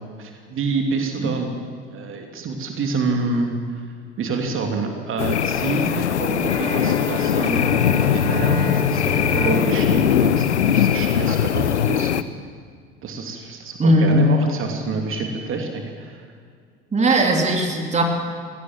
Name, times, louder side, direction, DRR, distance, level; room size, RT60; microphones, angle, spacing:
voice 1, 0.2-1.5 1.9-3.9 4.2-7.7 8.1-12.1 13.0-16.3, right 4 dB, 35° right, 3 dB, 2.7 m, -27 dB
sound 1, 5.2-12.2, left 9 dB, 75° left, 0.8 m, -20 dB
Bowed string instrument, 6.5-11.3, equal, 15° left, 4.4 m, -30 dB
voice 2, 13.8-14.2 16.9-18.0, right 1 dB, 20° right, 2 dB, 2.8 m, -18 dB
23.0 x 18.0 x 7.5 m, 2.1 s
figure-of-eight pair, 70°, 34 cm